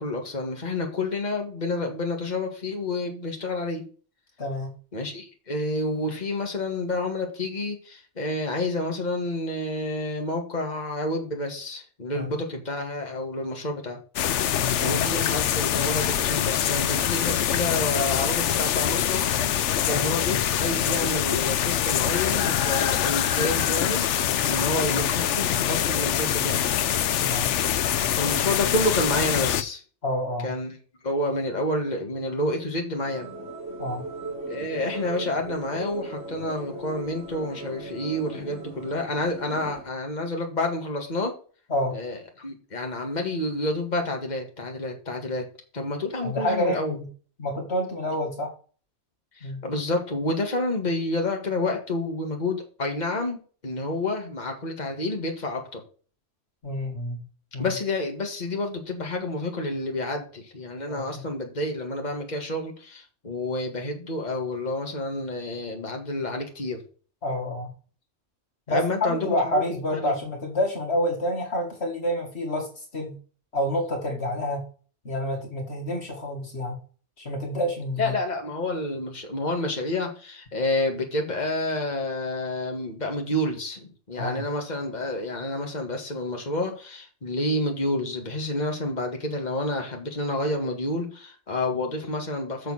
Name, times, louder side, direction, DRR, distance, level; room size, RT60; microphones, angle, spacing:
voice 1, 0.0-3.8 4.9-14.0 14.8-19.3 19.8-26.6 28.2-29.8 30.4-30.8 31.0-33.3 34.5-41.3 41.9-45.4 45.7-47.0 49.4-55.8 57.6-66.8 68.7-69.3 69.5-69.6 70.0-70.1 78.0-92.7, left 2 dB, 35° left, 2 dB, 2.1 m, -29 dB
voice 2, 4.4-4.7 12.1-12.3 14.6-15.1 19.9-20.0 27.2-27.5 30.0-30.5 33.8-34.0 41.7-42.0 46.2-47.1 47.4-48.5 49.4-49.6 56.6-57.2 57.5-57.7 60.9-61.2 67.2-67.7 68.7-73.1 73.5-74.6 75.0-76.7 77.2-78.1 84.2-84.4, left 1 dB, 60° left, 2 dB, 2.2 m, -28 dB
sound 1, 14.2-29.6, left 10 dB, 75° left, 1.0 m, -24 dB
sound 2, 33.0-39.8, right 2 dB, 70° right, 3.0 m, -38 dB
6.7 x 6.6 x 6.4 m, 0.39 s
omnidirectional pair, 1.2 m